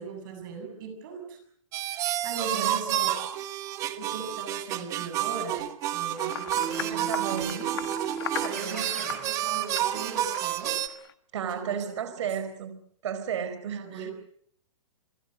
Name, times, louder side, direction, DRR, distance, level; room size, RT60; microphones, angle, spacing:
voice 1, 0.0-1.4 1.8-3.2 3.8-5.7 5.9-7.9 8.4-10.8 11.4-12.3 13.7-14.1, right 4 dB, 35° right, 5 dB, 7.6 m, -39 dB
sound 1, 1.7-10.9, right 13 dB, 20° right, 1.1 m, -30 dB
voice 2, 2.5-2.9 6.8-7.6 8.4-8.8 11.3-12.7 13.0-14.1, right 8 dB, 55° right, 12 dB, 4.3 m, -33 dB
sound 2, 6.1-11.1, left 12 dB, 45° left, 1.7 m, -40 dB
Keyboard (musical), 6.5-9.3, right 6 dB, 5° left, 6.0 m, -36 dB
29.0 x 19.5 x 7.8 m, 0.63 s
hypercardioid pair, 165°, 17 cm